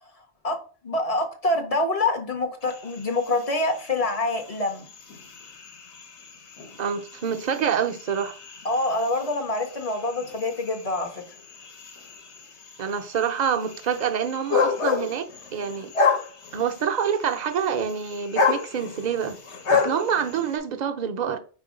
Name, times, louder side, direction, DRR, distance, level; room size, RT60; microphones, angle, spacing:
voice 1, 0.8-4.9 8.6-11.2, left 2 dB, 40° left, 0.7 m, -26 dB
sound 1, 2.6-20.6, left 5 dB, 85° left, 1.2 m, -31 dB
voice 2, 6.8-8.4 12.8-15.9 16.5-19.4 19.7-21.4, right 7 dB, 50° right, 0.5 m, -27 dB
4.3 x 2.6 x 4.8 m
omnidirectional pair, 1.1 m